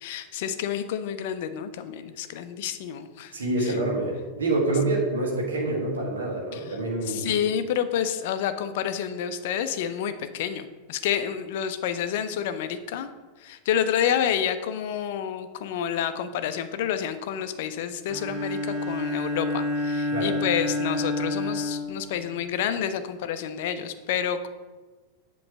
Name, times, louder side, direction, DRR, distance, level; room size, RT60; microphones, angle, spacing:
voice 1, 0.0-3.3 3.7-3.8 6.5-6.6 7.1-13.1 13.4-24.5, left 9 dB, 50° left, 10 dB, 0.5 m, -29 dB
voice 2, 3.3-7.3 20.1-20.3, right 2 dB, 65° right, -2 dB, 1.4 m, -27 dB
Bowed string instrument, 18.1-22.7, left 2 dB, 35° right, 1.0 m, -29 dB
7.8 x 3.1 x 5.9 m, 1.3 s
figure-of-eight pair, 90°, 0 cm